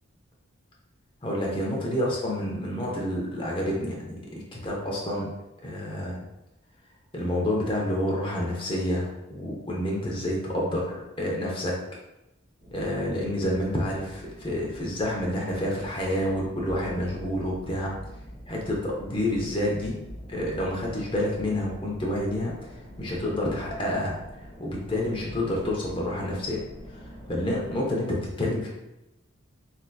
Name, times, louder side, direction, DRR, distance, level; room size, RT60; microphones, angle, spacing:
voice 1, 1.2-5.3 5.6-6.2 7.1-11.7 12.7-17.9 18.5-20.0 20.3-22.5 23.0-24.2 24.6-26.6 26.9-27.0 27.3-28.7, left 1 dB, 25° left, -3 dB, 0.6 m, -28 dB
sound 1, 12.6-27.9, equal, 55° right, 1.0 m, -44 dB
3.3 x 2.8 x 2.2 m, 0.94 s
head